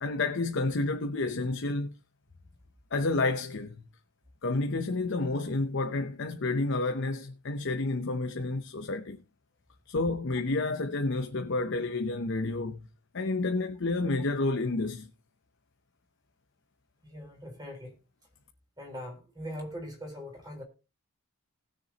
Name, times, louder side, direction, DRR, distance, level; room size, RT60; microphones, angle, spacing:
voice 1, 0.0-1.9 2.9-3.8 4.4-9.2 9.9-12.9 13.1-15.1, left 2 dB, 55° left, 0.7 m, -30 dB
voice 2, 17.0-18.0 18.8-20.6, equal, 20° right, 4.1 m, -41 dB
19.5 x 6.9 x 2.9 m
head